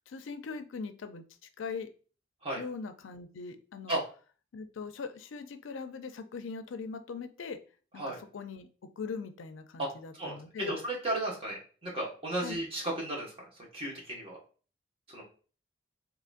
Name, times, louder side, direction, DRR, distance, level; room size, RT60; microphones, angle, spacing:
voice 1, 0.1-1.2 1.6-1.9 2.5-4.0 4.5-7.6 7.9-8.7 9.0-10.8 12.4-12.7, left 5 dB, 85° left, 9 dB, 0.4 m, -41 dB
voice 2, 10.2-13.3 13.7-14.4 15.1-15.2, right 1 dB, 30° right, -3 dB, 1.2 m, -34 dB
3.8 x 2.9 x 2.5 m, 0.38 s
head